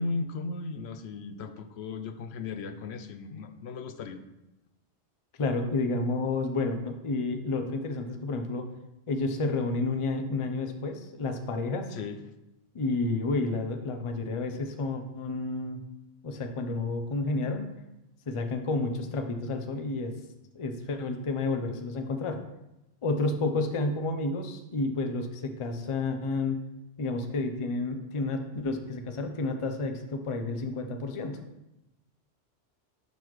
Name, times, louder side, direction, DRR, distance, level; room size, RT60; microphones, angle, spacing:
voice 1, 0.0-4.2 11.9-12.2 28.5-28.7, left 3 dB, 75° left, 9 dB, 0.8 m, -36 dB
voice 2, 5.4-8.7 9.1-11.9 12.7-15.8 16.2-17.6 18.3-20.1 20.5-22.4 23.0-26.6 27.0-31.4, left 3 dB, 35° left, 6 dB, 0.6 m, -30 dB
12.0 x 4.1 x 3.1 m, 0.93 s
omnidirectional pair, 1.1 m